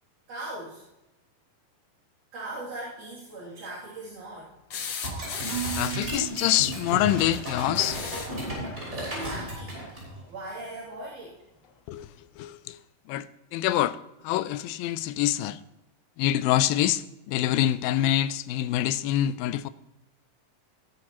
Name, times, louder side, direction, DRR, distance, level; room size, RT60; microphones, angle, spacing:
voice 1, 0.3-0.8 2.3-4.6 8.9-9.8 10.3-11.4, right 2 dB, 60° right, 4.3 m, -39 dB
sound 1, 4.7-6.1 7.6-8.4 10.1-10.2 11.6-11.7, left 6 dB, 60° left, 2.0 m, -36 dB
sound 2, 5.0-10.2, right 1 dB, 15° right, 5.8 m, -34 dB
Marimba xylophone / Wood, 5.5-7.7, right 14 dB, 80° right, 1.9 m, -38 dB
voice 2, 5.8-8.0 11.9-12.1 12.4-12.8 13.1-13.3 13.5-14.0 14.2-15.6 16.2-19.7, left 13 dB, 80° left, 2.3 m, -25 dB
19.5 x 11.0 x 3.0 m
omnidirectional pair, 4.2 m